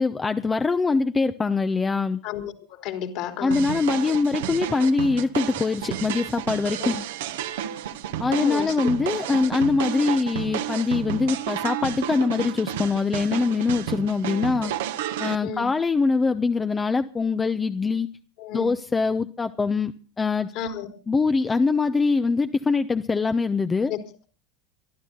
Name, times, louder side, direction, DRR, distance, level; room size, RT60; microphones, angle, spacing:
voice 1, 0.0-2.2 3.4-7.0 8.2-14.7 15.2-18.1 18.5-19.9 20.2-20.5 21.1-23.9, left 4 dB, 20° left, 10 dB, 0.8 m, -23 dB
voice 2, 2.2-3.6 6.8-7.0 8.3-8.7 15.4-15.7 18.4-18.7 20.6-20.9 23.9-24.0, left 8 dB, 55° left, 5 dB, 3.6 m, -32 dB
sound 1, 3.5-15.4, right 11 dB, 70° right, 1.3 m, -31 dB
23.5 x 13.0 x 3.9 m, 0.36 s
hypercardioid pair, 80°, 0 cm